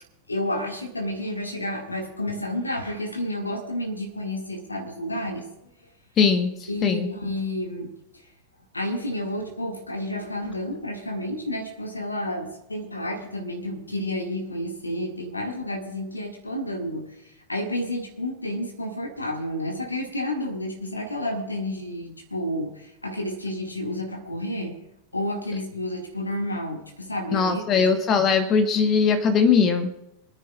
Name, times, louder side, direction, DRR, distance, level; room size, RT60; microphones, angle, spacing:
voice 1, 0.3-5.4 6.7-7.9 8.7-17.1 17.5-24.8 25.1-27.9, left 1 dB, 80° left, 2 dB, 1.9 m, -30 dB
voice 2, 6.2-7.1 27.3-29.9, left 5 dB, 30° left, 8 dB, 1.1 m, -20 dB
27.5 x 9.8 x 2.4 m, 0.85 s
figure-of-eight pair, 90°, 0 cm